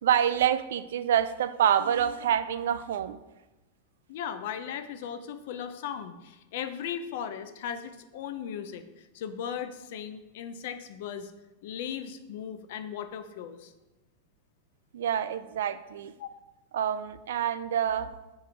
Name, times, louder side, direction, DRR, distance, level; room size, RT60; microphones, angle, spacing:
voice 1, 0.0-3.2 14.9-16.1 16.7-18.1, right 9 dB, 75° right, 14 dB, 0.3 m, -27 dB
voice 2, 4.1-11.3 11.6-13.7 16.2-16.3, left 8 dB, 50° left, 10 dB, 0.5 m, -37 dB
7.2 x 3.1 x 4.5 m, 1.1 s
supercardioid pair, 180°, 0 cm